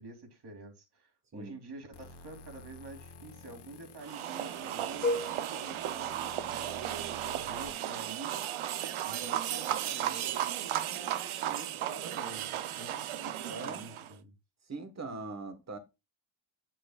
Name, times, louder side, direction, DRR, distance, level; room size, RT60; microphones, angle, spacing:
voice 1, 0.0-8.5 9.0-14.3, right 3 dB, 55° right, 2.9 m, -48 dB
sound 1, 1.9-7.7, left 3 dB, 55° left, 1.2 m, -52 dB
sound 2, 4.0-14.1, right 11 dB, 80° right, 0.8 m, -35 dB
sound 3, 5.0-7.1, left 2 dB, 25° left, 2.2 m, -36 dB
voice 2, 13.5-13.9 14.7-15.8, right 3 dB, 35° right, 1.5 m, -41 dB
8.6 x 7.7 x 2.4 m
wide cardioid pair, 145°, 48 cm